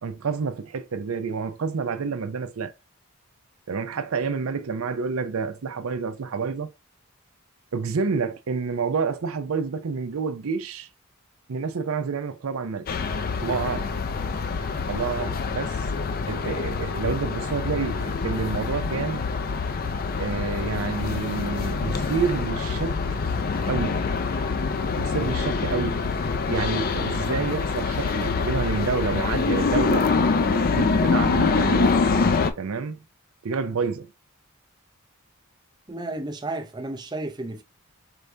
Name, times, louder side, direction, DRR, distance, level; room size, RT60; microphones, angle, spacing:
voice 1, 0.0-2.7 3.7-6.7 7.7-10.9 11.5-12.9 13.4-13.9 14.9-15.9 16.3-19.3 20.2-23.0 23.6-24.0 25.0-26.0 26.5-32.0 32.6-33.0 33.4-34.1, right 5 dB, 75° right, 0.5 m, -28 dB
sound 1, 12.9-32.5, left 4 dB, 40° left, 0.4 m, -25 dB
voice 2, 35.9-37.6, right 2 dB, 20° right, 0.5 m, -32 dB
4.7 x 2.6 x 3.2 m
head